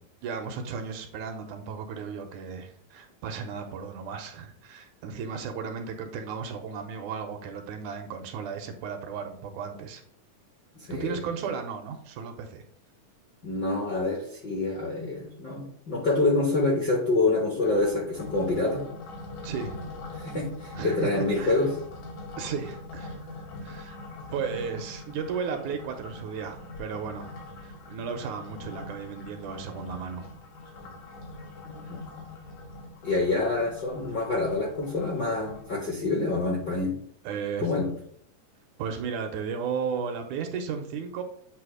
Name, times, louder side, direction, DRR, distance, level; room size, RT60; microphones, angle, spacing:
voice 1, 0.2-10.0 10.9-12.6 19.4-19.8 20.8-21.6 22.4-23.2 23.6-24.0 24.3-27.3 27.6-30.3 37.2-38.0 38.8-41.2, right 6 dB, 75° right, 6 dB, 2.1 m, -34 dB
voice 2, 10.7-11.2 13.4-18.8 20.2-21.7 31.7-32.0 33.0-36.9 37.6-37.9, left 3 dB, 55° left, -2 dB, 1.1 m, -27 dB
sound 1, 17.6-35.7, left 2 dB, 75° left, 2.6 m, -42 dB
8.4 x 2.8 x 4.7 m, 0.62 s
omnidirectional pair, 3.6 m